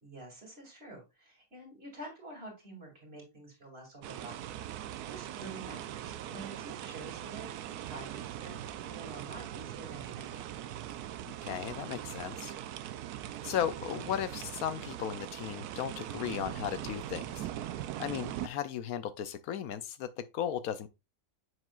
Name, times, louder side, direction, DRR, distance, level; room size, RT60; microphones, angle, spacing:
voice 1, 0.0-4.5 4.7-10.4, right 2 dB, 40° right, 2.9 m, -48 dB
sound 1, 4.0-18.5, right 12 dB, 85° right, 1.1 m, -41 dB
voice 2, 11.4-12.5 13.4-17.5 18.0-20.9, left 10 dB, 75° left, 1.0 m, -36 dB
7.4 x 6.3 x 2.4 m
omnidirectional pair, 1.6 m